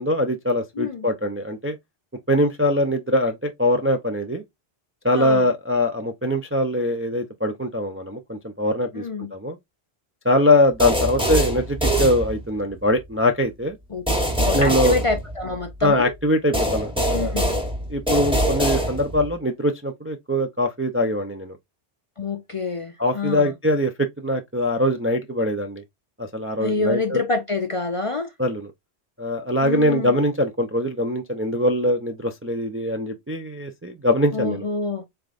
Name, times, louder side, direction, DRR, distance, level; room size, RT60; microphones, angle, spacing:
voice 1, 0.0-1.8 2.3-4.4 5.0-9.0 9.3-9.6 10.2-13.8 14.5-15.0 15.8-17.3 17.9-21.6 23.0-25.8 26.2-27.2 28.4-28.7 29.2-34.6, left 1 dB, 20° right, 0.3 m, -22 dB
voice 2, 0.8-1.1 5.1-5.5 8.9-9.3 13.9-14.0 14.4-16.1 17.1-17.6 22.2-23.5 26.6-28.3 29.6-30.1 34.3-35.0, left 3 dB, 45° left, 0.4 m, -27 dB
sound 1, 10.8-12.7 14.1-15.8 16.5-19.3, equal, 5° right, 1.2 m, -24 dB
3.7 x 3.4 x 2.4 m
omnidirectional pair, 1.1 m